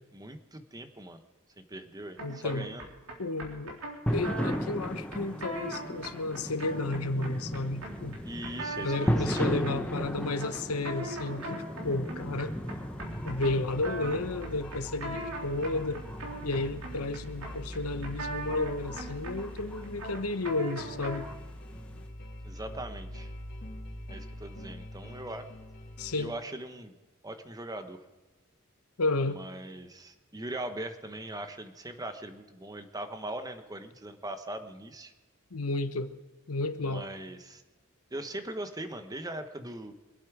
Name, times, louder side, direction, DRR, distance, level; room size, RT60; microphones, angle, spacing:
voice 1, 0.1-1.2 1.6-2.9 8.2-9.5 22.4-23.3 24.1-25.5 26.2-27.0 27.2-28.0 29.3-35.1 36.8-37.6 38.1-39.9, right 1 dB, 15° right, 8 dB, 1.0 m, -40 dB
voice 2, 2.2-2.7 3.2-3.8 4.1-8.2 8.8-12.6 13.2-16.0 16.4-21.3 26.0-26.3 29.0-29.4 35.5-36.1 36.5-37.0, left 2 dB, 80° left, 9 dB, 1.1 m, -32 dB
sound 1, 2.2-21.4, right 2 dB, 75° right, 3.6 m, -41 dB
sound 2, 4.1-22.0, equal, 5° left, 1.3 m, -37 dB
sound 3, 13.0-26.1, equal, 45° left, 2.8 m, -44 dB
25.0 x 8.5 x 4.9 m, 1.2 s
head